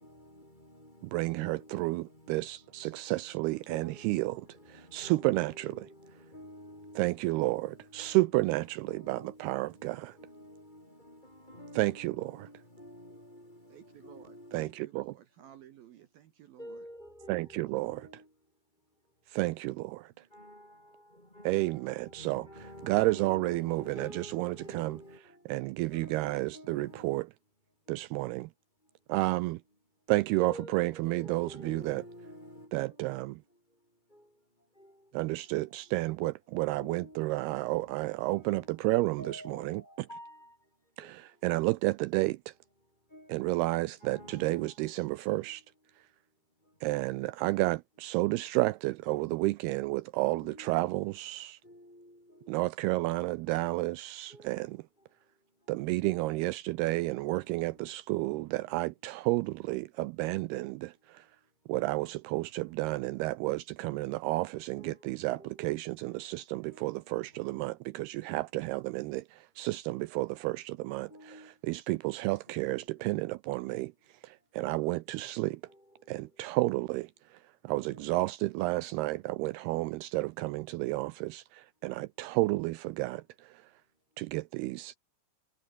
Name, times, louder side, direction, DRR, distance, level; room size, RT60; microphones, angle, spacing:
voice 1, 0.0-8.3 8.6-14.9 15.4-15.5 16.6-18.5 18.9-19.1 20.1-25.5 25.9-27.2 27.8-28.0 28.8-29.2 30.4-33.1 33.5-35.9 36.8-41.7 42.8-43.5 44.0-45.6 45.9-46.1 46.6-46.8 50.3-50.8 51.6-52.6 52.9-53.1 54.3-54.7 55.0-55.7 57.1-57.9 58.6-58.8 60.8-61.7 63.4-63.6 64.8-65.7 66.0-67.1 67.3-67.8 71.1-71.6 72.5-73.1 75.1-76.5 77.9-78.2, equal, 10° left, 4.6 m, -52 dB
voice 2, 1.0-5.9 7.0-10.2 11.8-12.5 14.5-15.1 17.3-18.1 19.3-20.2 21.5-22.5 22.8-25.0 25.5-27.3 27.9-28.5 29.1-29.6 30.1-32.0 32.7-33.4 35.1-40.1 41.0-42.5 43.3-45.6 46.8-51.6 52.5-54.8 55.7-61.3 61.7-73.9 74.2-75.6 76.1-83.7 84.2-85.0, right 20 dB, 85° right, 2.3 m, -31 dB
voice 3, 13.7-16.9 17.7-18.0, right 11 dB, 65° right, 2.8 m, -55 dB
omnidirectional pair, 5.1 m